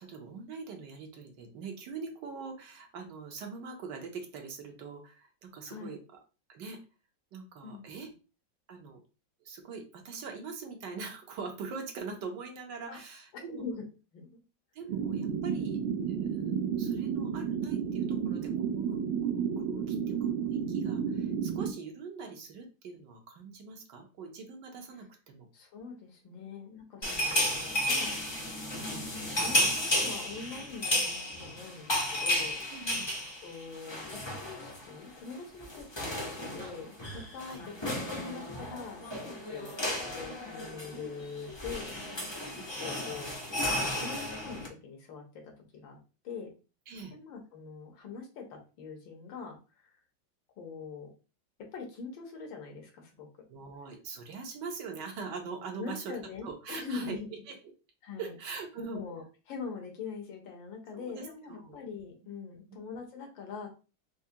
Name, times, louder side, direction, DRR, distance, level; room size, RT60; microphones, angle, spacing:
voice 1, 0.0-6.0 6.5-6.8 7.3-8.1 8.7-9.0 9.4-13.6 14.7-15.8 16.1-19.0 19.3-25.5 32.7-33.1 35.8-35.9 36.6-36.7 37.4-37.6 39.6-39.7 40.9-41.1 42.5-42.6 46.9-47.1 53.5-56.2 56.4-57.2 57.5-57.6 58.2-59.0 60.9-61.8, right 5 dB, 70° right, 3 dB, 1.3 m, -43 dB
voice 2, 5.7-6.0 7.6-7.9 12.9-13.0 13.3-13.8 14.1-14.4 25.5-28.2 29.0-33.0 33.4-43.8 44.0-46.0 46.2-46.5 47.1-50.0 50.6-51.1 51.7-53.3 55.8-57.3 58.0-58.3 58.9-63.7, left 5 dB, 80° left, 3 dB, 1.7 m, -43 dB
sound 1, 14.9-21.7, right 7 dB, 90° right, 1.4 m, -32 dB
sound 2, 27.0-34.9 35.2-35.4 35.6-44.7, left 1 dB, 45° left, 0.3 m, -33 dB
4.7 x 2.1 x 2.7 m, 0.33 s
omnidirectional pair, 2.1 m